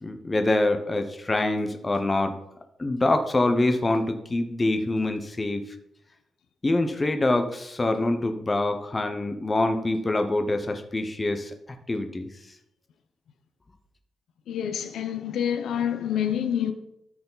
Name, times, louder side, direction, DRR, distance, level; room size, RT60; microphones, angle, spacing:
voice 1, 0.0-2.3 2.8-5.6 6.6-11.5 11.9-12.3, left 2 dB, 20° left, 0.8 m, -25 dB
voice 2, 14.5-16.7, left 9 dB, 90° left, 0.7 m, -27 dB
13.0 x 4.8 x 4.0 m
wide cardioid pair, 140°, 0 cm